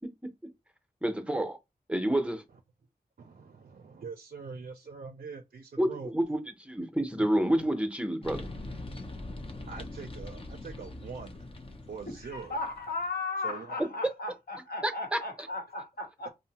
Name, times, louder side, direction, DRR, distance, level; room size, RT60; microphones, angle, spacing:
voice 1, 1.0-1.6 1.9-2.4 5.8-8.5 14.0-14.1 14.8-15.5, right 1 dB, 5° right, 0.6 m, -29 dB
voice 2, 3.2-6.1 9.2-11.4 11.9-12.5 13.4-13.9, right 5 dB, 60° right, 0.4 m, -43 dB
sound 1, 8.2-13.1, left 2 dB, 35° left, 0.5 m, -42 dB
voice 3, 12.1-16.3, left 3 dB, 75° left, 0.9 m, -36 dB
2.6 x 2.0 x 2.8 m
cardioid pair, 50°, 16 cm